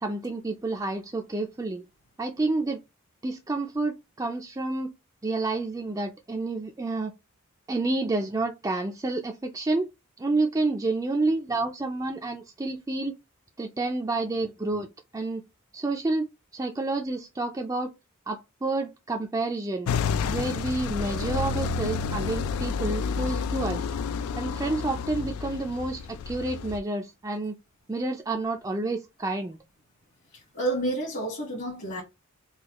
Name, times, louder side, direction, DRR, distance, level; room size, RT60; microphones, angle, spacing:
voice 1, 0.0-1.8 2.2-2.8 3.2-4.9 5.2-7.1 7.7-9.9 10.2-13.1 13.6-14.9 15.1-15.4 15.7-16.3 16.5-17.9 18.3-19.9 20.3-23.8 24.4-27.6 27.9-29.6, right 2 dB, 15° right, 0.3 m, -29 dB
sound 1, 19.9-26.8, left 5 dB, 85° left, 0.3 m, -30 dB
voice 2, 30.5-32.0, right 2 dB, 55° left, 1.3 m, -29 dB
3.9 x 2.3 x 2.9 m
head